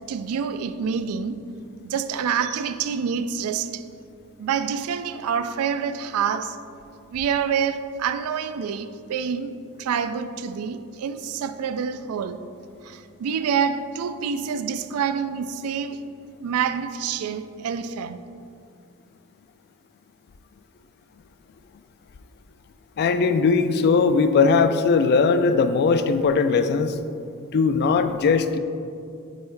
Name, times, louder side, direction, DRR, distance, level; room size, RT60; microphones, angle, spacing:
voice 1, 0.1-1.4 1.8-3.8 4.4-6.6 7.1-12.4 12.8-16.0 16.4-18.2, right 7 dB, 75° right, 0.3 m, -27 dB
voice 2, 23.0-27.0 27.5-28.6, left 4 dB, 50° left, 0.3 m, -19 dB
5.3 x 4.4 x 4.5 m
head